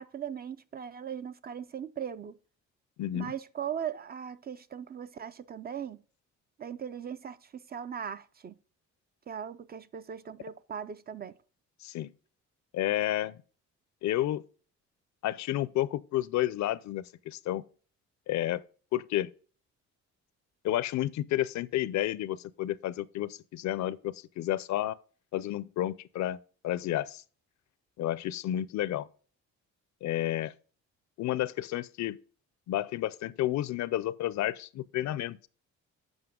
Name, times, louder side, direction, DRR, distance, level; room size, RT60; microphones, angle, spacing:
voice 1, 0.0-2.4 3.1-6.0 6.6-8.5 9.3-11.4, right 8 dB, 35° right, 0.4 m, -39 dB
voice 2, 3.0-3.3 11.8-12.1 12.7-13.4 14.0-14.4 15.2-17.6 18.3-18.6 18.9-19.3 20.6-25.0 25.3-26.4 26.6-27.2 28.0-29.1 30.0-30.5 31.2-32.2 32.7-35.4, left 13 dB, 65° left, 0.5 m, -31 dB
8.0 x 5.2 x 3.6 m
cardioid pair, 90°, 30 cm